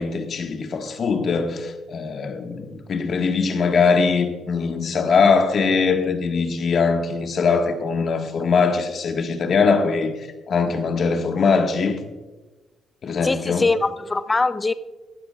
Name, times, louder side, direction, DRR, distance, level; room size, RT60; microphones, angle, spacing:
voice 1, 0.0-10.2 10.5-12.0 13.0-13.7, left 5 dB, 55° left, 1.4 m, -21 dB
voice 2, 13.2-14.7, left 3 dB, 25° left, 0.5 m, -22 dB
17.5 x 12.0 x 2.3 m
cardioid pair, 90°, 0 cm